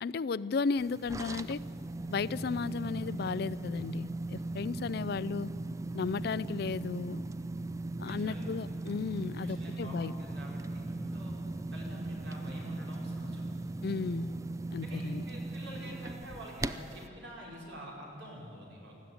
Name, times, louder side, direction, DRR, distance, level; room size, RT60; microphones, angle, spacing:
voice 1, 0.0-1.6 2.1-5.5 5.9-7.2 8.0-10.2 13.8-14.4 14.7-15.3, left 4 dB, 55° left, 19 dB, 0.4 m, -34 dB
sound 1, 0.8-17.1, right 2 dB, 15° right, 0.4 m, -38 dB
voice 2, 8.0-8.7 9.4-11.3 11.7-13.4 14.8-18.9, equal, 75° right, -3 dB, 5.4 m, -47 dB
20.0 x 14.0 x 9.5 m, 2.7 s
head